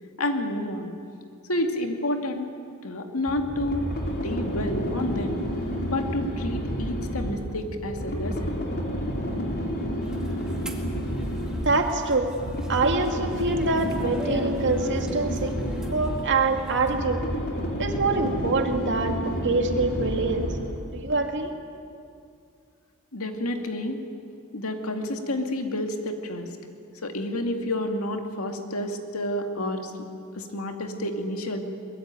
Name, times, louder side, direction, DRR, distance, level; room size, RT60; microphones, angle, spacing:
voice 1, 0.2-0.9 1.5-2.5 2.8-5.4 5.8-8.6 23.1-24.0 24.5-26.5 27.0-29.9 30.3-31.6, left 1 dB, 70° left, 4 dB, 2.3 m, -29 dB
sound 1, 3.3-20.9, equal, 50° left, 3.6 m, -30 dB
sound 2, 10.0-17.0, right 1 dB, 5° right, 2.3 m, -42 dB
voice 2, 11.7-12.3 12.7-17.2 17.8-20.6 20.9-21.5, right 3 dB, 55° right, 4 dB, 2.2 m, -25 dB
22.5 x 21.0 x 9.2 m, 2.4 s
head